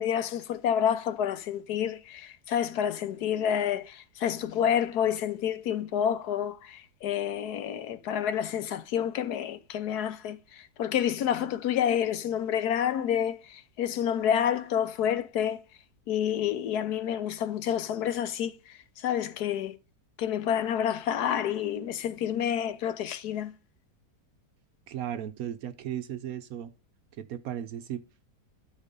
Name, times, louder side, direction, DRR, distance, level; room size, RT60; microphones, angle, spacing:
voice 1, 0.0-15.6 16.1-19.8 20.2-23.5, left 9 dB, 70° left, 1.2 m, -29 dB
voice 2, 24.9-26.7 27.2-28.2, right 10 dB, 65° right, 1.0 m, -36 dB
13.0 x 4.4 x 5.2 m
omnidirectional pair, 1.9 m